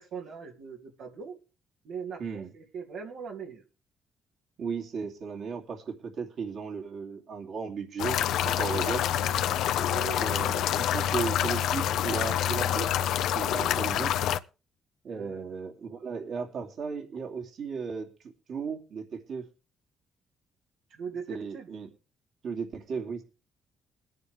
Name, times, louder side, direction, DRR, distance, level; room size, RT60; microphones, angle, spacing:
voice 1, 0.0-1.4 1.8-3.6 8.8-9.0 9.8-10.5 15.1-15.5 20.9-21.7, right 6 dB, 85° right, -1 dB, 2.6 m, -41 dB
voice 2, 4.6-9.2 10.2-12.9 13.3-14.2 15.0-19.4 21.3-21.9 22.4-23.2, right 5 dB, 65° right, 2 dB, 2.7 m, -35 dB
sound 1, 8.0-14.4, left 10 dB, 85° left, 0.6 m, -27 dB
21.5 x 9.4 x 3.4 m, 0.32 s
cardioid pair, 90°, 0 cm